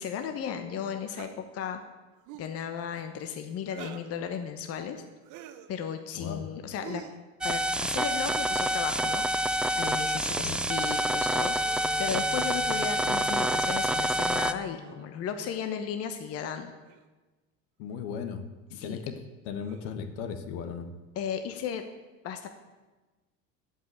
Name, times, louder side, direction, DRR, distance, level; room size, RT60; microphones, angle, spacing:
voice 1, 0.0-1.8 2.4-5.0 5.7-7.0 7.4-11.6 12.0-16.7 18.8-19.0 21.2-21.8 22.2-22.5, left 8 dB, 45° left, 7 dB, 1.0 m, -35 dB
sound 1, 1.1-1.3 2.2-2.5 3.7-4.1 5.2-5.7 6.8-7.2 8.5-8.9 10.2-10.4 11.5-11.7 12.7-13.2 14.8-15.0 16.0-16.2 16.8-17.1 17.9-18.1 19.6-20.0, right 11 dB, 60° right, 1.1 m, -47 dB
sound 2, 7.4-14.5, right 1 dB, 5° right, 0.3 m, -27 dB
Wind instrument woodwind instrument, 11.1-15.2, equal, 45° right, 2.0 m, -45 dB
voice 2, 17.8-18.4 18.7-20.9, left 6 dB, 70° left, 9 dB, 1.5 m, -36 dB
15.0 x 5.7 x 8.6 m, 1.2 s
supercardioid pair, 125°, 33 cm